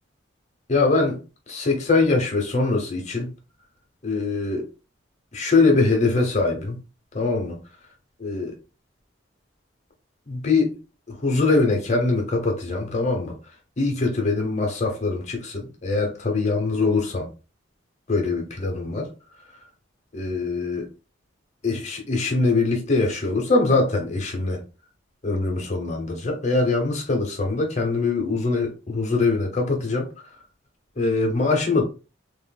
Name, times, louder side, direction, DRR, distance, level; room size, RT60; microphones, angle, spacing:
voice 1, 0.7-1.2 1.5-3.3 4.0-4.7 5.3-6.8 7.1-7.6 8.2-8.5 10.3-10.8 11.1-13.3 13.8-17.3 18.1-19.1 20.1-20.9 21.6-24.6 25.2-30.1 31.0-31.8, left 3 dB, 35° left, 0.8 m, -23 dB
3.3 x 2.5 x 2.2 m
head